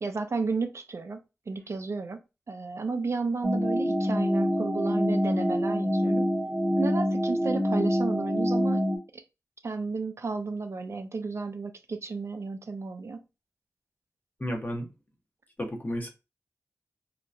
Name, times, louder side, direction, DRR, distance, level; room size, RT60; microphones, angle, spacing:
voice 1, 0.0-1.2 1.5-2.2 2.5-6.3 6.8-8.9 9.1-9.2 9.6-13.2, right 4 dB, 55° right, 0.4 m, -32 dB
sound 1, 3.4-9.0, equal, ahead, 0.9 m, -26 dB
voice 2, 14.4-14.9 15.6-16.1, equal, 30° left, 0.9 m, -32 dB
2.8 x 2.2 x 2.4 m
wide cardioid pair, 65°, 6 cm